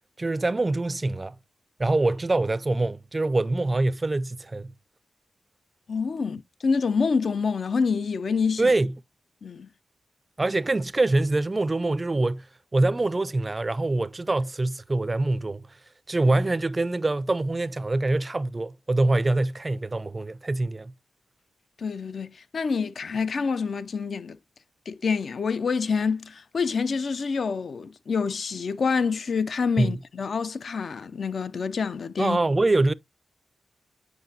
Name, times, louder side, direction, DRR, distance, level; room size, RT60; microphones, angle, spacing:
voice 1, 0.2-1.3 1.8-4.7 8.6-9.0 10.4-12.5 12.7-15.6 16.1-20.9 29.8-30.0 32.2-32.9, right 2 dB, 30° right, 0.4 m, -24 dB
voice 2, 5.9-8.7 9.4-9.7 21.8-24.4 24.9-32.4, left 5 dB, 60° left, 0.4 m, -27 dB
7.8 x 5.5 x 2.7 m
cardioid pair, 85°, 0 cm